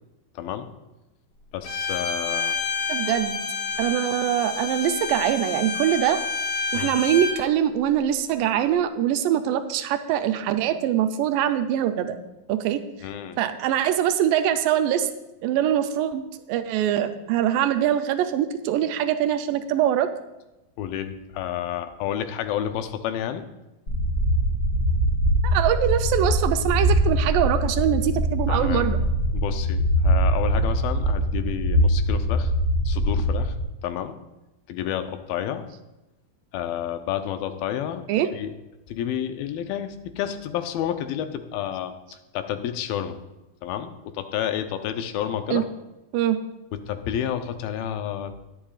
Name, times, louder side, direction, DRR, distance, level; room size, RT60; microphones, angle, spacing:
voice 1, 0.4-0.7 1.5-2.6 6.7-7.0 13.0-13.4 20.8-23.5 28.5-28.9 29.3-32.5 32.9-33.6 33.8-34.2 34.7-35.7 36.5-38.5 38.9-43.2 43.6-45.7 46.7-48.3, left 10 dB, 80° left, 8 dB, 2.5 m, -30 dB
Bowed string instrument, 1.6-7.4, left 5 dB, 65° left, 1.4 m, -29 dB
voice 2, 2.9-3.4 3.8-6.2 6.7-12.2 12.5-12.8 13.4-15.1 15.4-16.2 16.5-20.1 25.4-29.0 38.1-38.3 45.5-45.6 46.1-46.4, right 10 dB, 80° right, 8 dB, 2.2 m, -23 dB
sound 1, 23.9-33.6, equal, 25° left, 2.6 m, -22 dB
20.5 x 8.8 x 2.4 m, 1.0 s
omnidirectional pair, 4.2 m